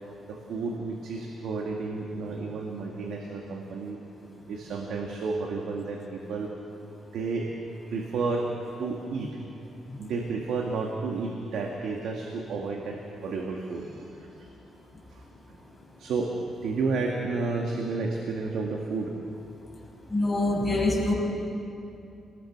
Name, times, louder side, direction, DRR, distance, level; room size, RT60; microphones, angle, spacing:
voice 1, 0.3-4.0 4.5-6.5 7.1-7.5 7.9-8.5 8.8-9.4 10.0-14.5 15.1-15.2 15.5-15.6 16.0-16.3 16.6-19.2, right 4 dB, 80° right, 1 dB, 2.0 m, -31 dB
voice 2, 20.1-21.1, left 2 dB, 15° left, -3 dB, 6.6 m, -25 dB
27.5 x 20.0 x 6.1 m, 2.7 s
cardioid pair, 105°, 0 cm